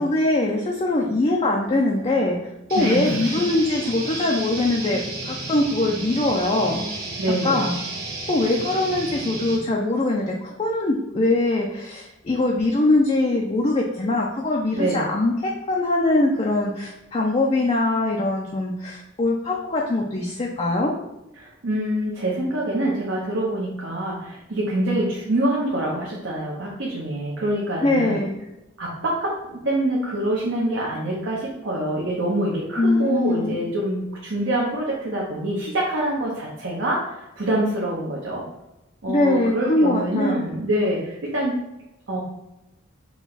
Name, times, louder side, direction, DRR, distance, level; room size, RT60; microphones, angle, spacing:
voice 1, 0.0-2.4 2.7-6.8 7.4-7.8 8.3-20.9 27.8-28.4 32.8-33.6 39.1-40.4, left 2 dB, 30° left, -1 dB, 0.4 m, -22 dB
sound 1, 2.7-9.6, right 2 dB, 50° right, 1.3 m, -32 dB
voice 2, 2.7-3.4 7.2-7.7 14.7-15.0 21.4-28.2 28.8-38.5 39.0-41.6 42.1-42.2, right 1 dB, 70° right, -5 dB, 0.9 m, -25 dB
4.6 x 2.2 x 3.9 m, 0.94 s
head